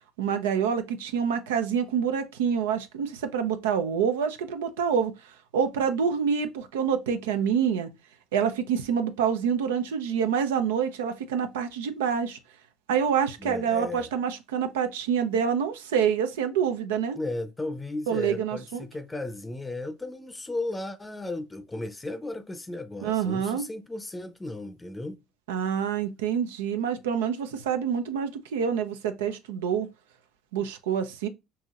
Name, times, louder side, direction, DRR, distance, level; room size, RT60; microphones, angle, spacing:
voice 1, 0.2-7.9 8.3-12.4 12.9-17.2 18.1-18.8 23.0-23.6 25.5-29.9 30.5-31.3, right 7 dB, 85° right, 0.5 m, -27 dB
voice 2, 13.4-14.1 17.1-25.2, left 2 dB, 15° left, 0.6 m, -35 dB
5.4 x 2.8 x 2.4 m
hypercardioid pair, 70°, 0 cm